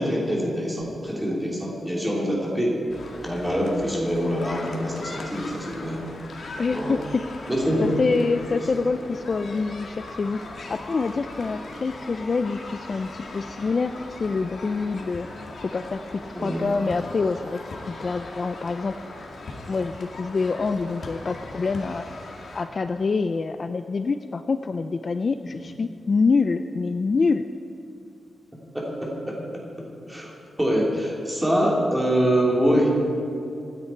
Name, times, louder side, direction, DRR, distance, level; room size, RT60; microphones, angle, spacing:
voice 1, 0.0-2.7 3.2-6.0 6.7-7.0 7.5-7.9 8.5-8.6 16.3-16.6 25.5-25.6 28.7-29.4 29.8-30.3 30.6-32.9, equal, 5° right, -3 dB, 3.0 m, -25 dB
sound 1, 2.9-22.7, left 2 dB, 55° left, 1.9 m, -39 dB
voice 2, 6.6-7.2 7.8-10.4 10.7-13.9 14.2-15.3 15.6-16.0 16.4-17.6 17.9-19.0 19.7-22.1 22.5-27.5, left 4 dB, 35° left, 9 dB, 0.4 m, -26 dB
25.5 x 9.7 x 4.4 m, 2.8 s
wide cardioid pair, 160°, 0 cm